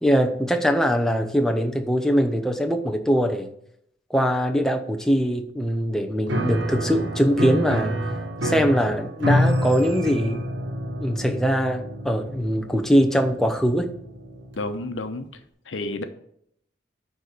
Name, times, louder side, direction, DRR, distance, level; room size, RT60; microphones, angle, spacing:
voice 1, 0.0-3.5 4.1-8.0 8.4-10.5 11.0-13.9, equal, 5° left, 0.7 m, -22 dB
Piano, 6.3-14.8, equal, 70° right, 1.5 m, -28 dB
voice 2, 14.6-15.3 15.7-16.0, left 2 dB, 90° left, 0.9 m, -30 dB
9.6 x 4.1 x 6.6 m
head